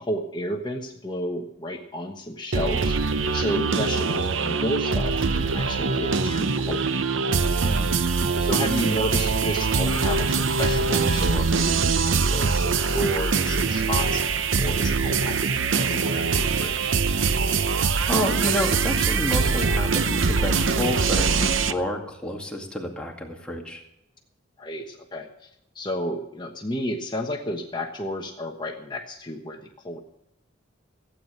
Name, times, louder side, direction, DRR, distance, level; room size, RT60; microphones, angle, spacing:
voice 1, 0.0-3.0 3.3-6.8 8.4-14.2 14.5-16.9 24.6-25.5 25.7-29.6 29.8-30.0, equal, 25° left, 2 dB, 1.2 m, -31 dB
sound 1, 2.5-21.7, right 4 dB, 80° right, 0.7 m, -23 dB
voice 2, 7.6-8.0 17.7-23.8, left 1 dB, 5° left, -1 dB, 2.1 m, -30 dB
16.0 x 9.1 x 6.6 m, 0.83 s
head